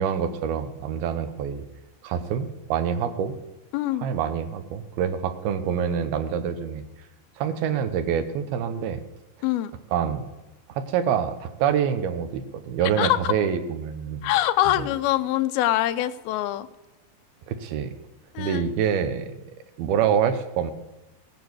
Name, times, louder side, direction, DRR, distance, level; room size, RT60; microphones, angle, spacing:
voice 1, 0.0-1.6 2.0-3.4 4.0-6.8 7.4-9.0 9.9-10.3 10.7-14.3 14.8-14.9 17.5-17.9 18.4-19.4 19.8-20.7, right 8 dB, 85° right, 10 dB, 2.9 m, -26 dB
voice 2, 3.7-4.1 9.4-9.7 13.0-13.2 14.2-16.7 18.3-18.7, left 14 dB, 85° left, 11 dB, 2.6 m, -24 dB
17.5 x 9.0 x 7.9 m, 1.0 s
omnidirectional pair, 4.3 m